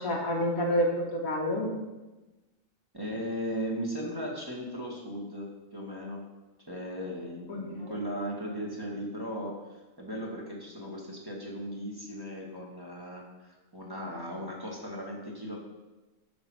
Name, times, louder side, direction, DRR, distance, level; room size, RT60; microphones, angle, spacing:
voice 1, 0.0-1.7 7.5-7.9, equal, 90° left, -1 dB, 2.3 m, -29 dB
voice 2, 2.9-6.2 6.7-15.6, equal, 15° right, -3 dB, 1.8 m, -37 dB
10.5 x 5.0 x 6.2 m, 1.1 s
omnidirectional pair, 1.4 m